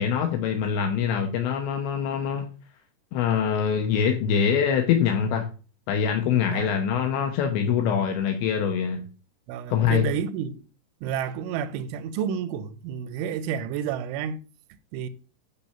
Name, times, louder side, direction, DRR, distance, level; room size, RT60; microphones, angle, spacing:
voice 1, 0.0-2.5 3.1-5.5 5.9-9.0 9.7-10.1, left 7 dB, 75° left, 3.1 m, -24 dB
voice 2, 6.3-6.8 9.5-10.7 11.0-14.4 14.9-15.1, right 8 dB, 85° right, 3.3 m, -30 dB
12.0 x 4.5 x 5.7 m
omnidirectional pair, 5.4 m